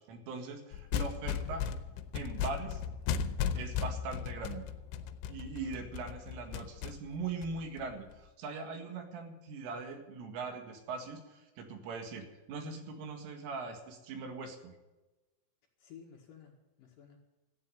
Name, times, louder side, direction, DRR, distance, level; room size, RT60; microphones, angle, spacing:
voice 1, 0.0-1.8 2.1-2.8 3.5-4.6 5.3-14.7, right 4 dB, 90° right, 5 dB, 4.5 m, -41 dB
sound 1, 0.7-8.1, left 8 dB, 85° left, 3.3 m, -36 dB
voice 2, 5.6-6.0 15.8-17.2, left 7 dB, 60° left, 0 dB, 2.5 m, -55 dB
13.5 x 8.6 x 9.7 m, 1.1 s
omnidirectional pair, 5.5 m